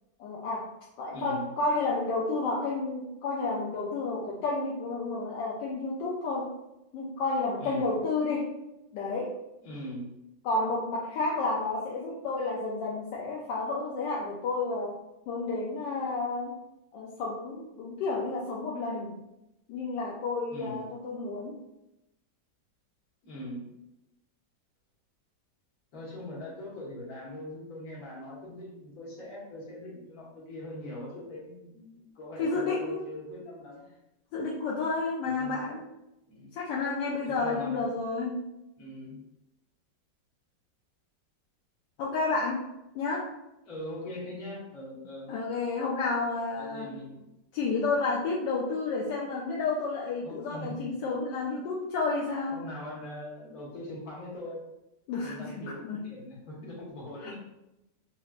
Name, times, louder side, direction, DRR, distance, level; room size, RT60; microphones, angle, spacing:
voice 1, 0.2-0.7 1.0-6.5 6.9-8.5 8.9-9.4 10.4-15.0 15.3-16.6 16.9-19.2 19.7-21.6 32.4-33.0 34.3-35.8 36.5-38.4 42.0-42.7 42.9-43.3 45.3-46.9 47.5-52.6 55.1-56.0 57.2-57.4, left 3 dB, 80° left, -3 dB, 1.3 m, -31 dB
voice 2, 1.1-1.5 7.6-7.9 9.6-10.1 20.5-20.9 23.2-23.7 25.9-33.8 35.3-35.6 36.3-36.5 37.3-37.9 38.8-39.2 43.6-45.3 46.6-47.2 50.2-50.8 52.5-54.6 55.2-57.4, left 1 dB, 55° left, -6 dB, 1.8 m, -41 dB
5.0 x 2.9 x 2.4 m, 0.92 s
omnidirectional pair, 1.9 m